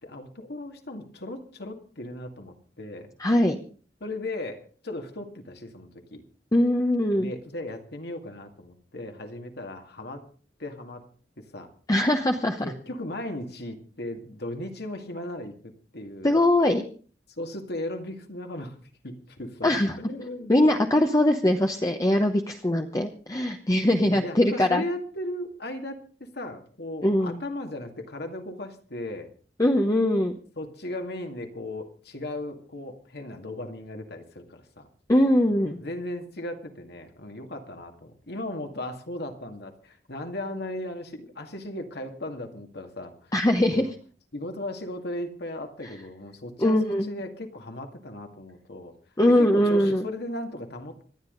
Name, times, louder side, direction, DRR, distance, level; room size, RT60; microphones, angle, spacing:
voice 1, 0.0-3.1 4.0-6.2 7.2-10.2 10.6-11.0 11.4-11.7 12.6-16.4 17.4-18.8 19.0-19.7 20.0-20.6 24.0-29.3 30.6-34.9 35.5-43.3 43.7-43.9 44.3-48.9 49.3-51.0, left 1 dB, 65° left, 5 dB, 2.2 m, -37 dB
voice 2, 3.2-3.6 6.5-7.3 11.9-12.7 16.2-16.8 19.6-20.0 20.5-24.8 27.0-27.4 29.6-30.4 35.1-35.8 43.3-43.9 46.6-47.1 49.2-50.1, left 1 dB, 20° left, 4 dB, 0.9 m, -22 dB
26.0 x 10.0 x 3.9 m, 0.41 s
head